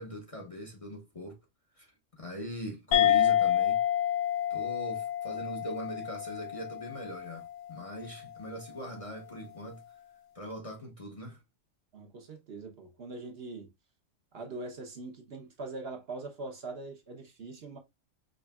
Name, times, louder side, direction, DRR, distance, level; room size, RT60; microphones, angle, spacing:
voice 1, 0.0-1.4 1.8-1.9 2.2-3.8 4.5-9.8 10.3-11.4, equal, 30° left, 0.9 m, -41 dB
sound 1, 2.9-7.8, left 11 dB, 60° left, 1.1 m, -28 dB
voice 2, 11.9-13.7 14.3-17.8, right 3 dB, 55° right, 1.0 m, -42 dB
5.2 x 3.2 x 2.3 m
omnidirectional pair, 1.3 m